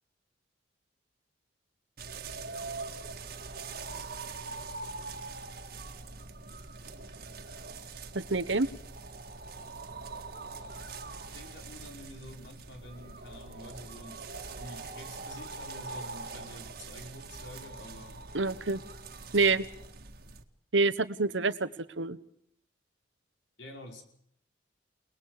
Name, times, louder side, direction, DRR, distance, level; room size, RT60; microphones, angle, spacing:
sound 1, 2.0-20.4, right 3 dB, 55° right, 1.9 m, -43 dB
voice 1, 8.1-8.7 18.3-18.8 19.3-19.7 20.7-21.7 22.0-22.2, right 3 dB, 85° right, 15 dB, 1.2 m, -26 dB
voice 2, 11.3-18.2 23.6-24.0, left 1 dB, 80° left, 3 dB, 5.5 m, -48 dB
30.0 x 20.0 x 4.9 m, 0.69 s
head